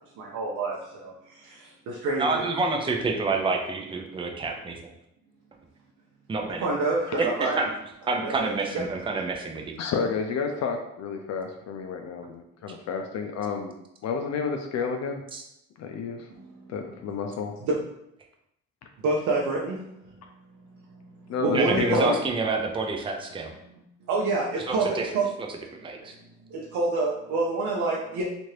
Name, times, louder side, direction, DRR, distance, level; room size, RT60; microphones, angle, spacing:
voice 1, 0.2-2.5 6.6-7.6 8.2-8.5 16.3-16.7 17.7-17.8 19.0-19.8 20.9-21.0 21.4-22.2 24.1-25.3 26.5-28.2, right 3 dB, 75° right, -3 dB, 0.6 m, -27 dB
voice 2, 2.2-4.9 6.3-6.7 7.2-7.7 8.1-9.7 15.3-15.4 21.5-23.5 24.5-25.1 25.8-26.2, right 3 dB, 15° right, 3 dB, 0.4 m, -28 dB
voice 3, 9.8-13.7 14.0-15.2 15.8-16.3 16.7-17.5 21.3-22.2, left 5 dB, 60° left, 4 dB, 0.4 m, -30 dB
2.8 x 2.5 x 3.1 m, 0.79 s
cardioid pair, 90°, 30 cm